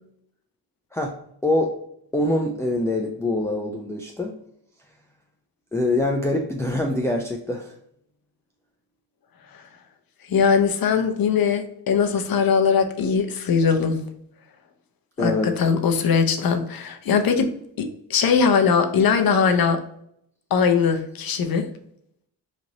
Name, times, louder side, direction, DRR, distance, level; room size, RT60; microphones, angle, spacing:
voice 1, 1.4-1.8 2.1-4.3 5.7-7.7 15.2-15.5, left 1 dB, 5° left, 1 dB, 0.5 m, -24 dB
voice 2, 10.3-14.0 15.2-17.5 17.8-19.8 20.5-21.6, left 6 dB, 55° left, 7 dB, 0.7 m, -20 dB
3.1 x 2.5 x 3.9 m, 0.71 s
supercardioid pair, 45°, 43 cm